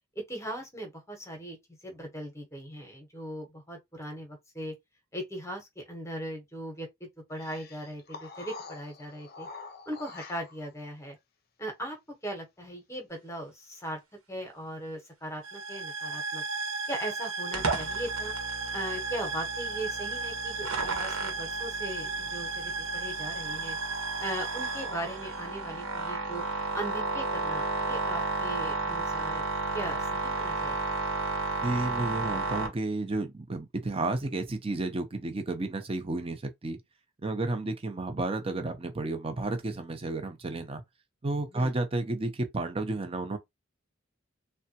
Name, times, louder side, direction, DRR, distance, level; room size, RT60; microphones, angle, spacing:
voice 1, 0.1-1.6 1.8-4.7 5.1-9.5 9.9-11.2 11.6-12.0 12.2-14.0 14.3-16.4 16.9-18.3 18.7-23.8 24.2-26.4 26.7-29.5 29.7-30.8 41.5-41.7, right 1 dB, 15° left, 0.9 m, -39 dB
sound 1, 7.4-10.7, left 4 dB, 50° left, 0.6 m, -46 dB
sound 2, 15.4-26.0, right 3 dB, 70° right, 0.8 m, -35 dB
sound 3, 17.5-32.7, right 3 dB, 90° right, 1.1 m, -33 dB
voice 2, 31.6-36.8 37.2-40.8 41.2-43.4, right 2 dB, 25° right, 0.6 m, -32 dB
3.4 x 2.2 x 2.8 m
head